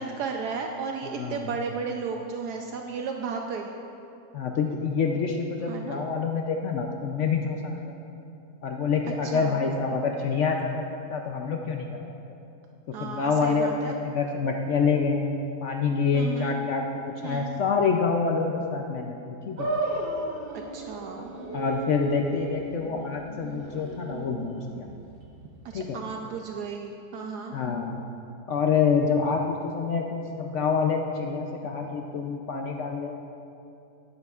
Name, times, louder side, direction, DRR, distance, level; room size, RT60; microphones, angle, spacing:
voice 1, 0.0-3.7 5.7-6.0 9.2-9.6 12.9-13.9 16.1-16.5 17.2-17.5 20.7-21.3 25.7-27.5, right 5 dB, 75° right, 3 dB, 1.1 m, -34 dB
voice 2, 1.0-1.5 4.3-7.9 8.6-10.8 11.1-11.9 13.0-15.2 15.6-19.7 21.5-24.9 25.7-26.0 27.5-28.0 28.5-33.1, left 5 dB, 65° left, 2 dB, 0.7 m, -27 dB
sound 1, 19.6-26.0, right 1 dB, 40° right, 1.0 m, -35 dB
12.0 x 11.0 x 2.4 m, 2.7 s
omnidirectional pair, 1.8 m